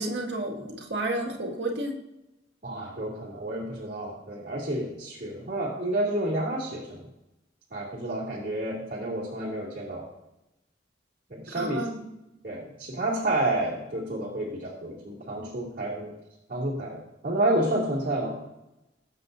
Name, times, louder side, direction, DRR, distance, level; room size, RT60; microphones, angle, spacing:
voice 1, 0.0-2.0 11.5-12.0, right 1 dB, 75° right, 0 dB, 2.0 m, -31 dB
voice 2, 2.6-7.0 7.7-10.1 11.3-11.8 12.4-16.1 16.5-17.0 17.2-18.4, right 1 dB, 50° right, -7 dB, 2.6 m, -30 dB
20.5 x 7.7 x 2.7 m, 0.94 s
head